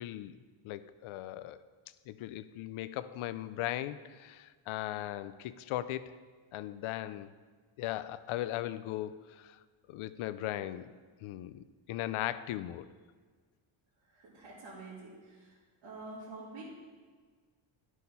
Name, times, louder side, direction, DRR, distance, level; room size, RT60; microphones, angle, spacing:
voice 1, 0.0-1.6 2.1-6.2 6.5-7.3 7.8-9.6 9.9-10.9 11.2-12.9, left 13 dB, 80° left, 15 dB, 0.6 m, -38 dB
voice 2, 14.1-15.6 15.8-16.6, right 3 dB, 65° right, -9 dB, 2.9 m, -47 dB
12.0 x 6.4 x 5.5 m, 1.5 s
cardioid pair, 175°, 49 cm